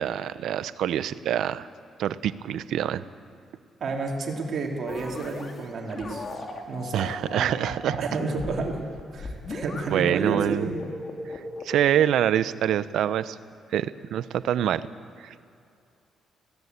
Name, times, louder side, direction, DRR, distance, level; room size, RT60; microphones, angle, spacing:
voice 1, 0.0-1.7 2.0-3.1 6.9-8.0 9.9-10.7 11.6-13.4 13.7-14.9 15.2-15.5, right 10 dB, 75° right, 15 dB, 0.6 m, -25 dB
voice 2, 3.8-6.2 6.7-7.6 8.0-8.8 9.1-10.8, right 4 dB, 55° right, 0 dB, 3.3 m, -31 dB
sound 1, 4.9-5.5 5.9-12.0, left 2 dB, 40° left, 2.4 m, -37 dB
19.0 x 16.5 x 8.2 m, 2.5 s
cardioid pair, 90°, 0 cm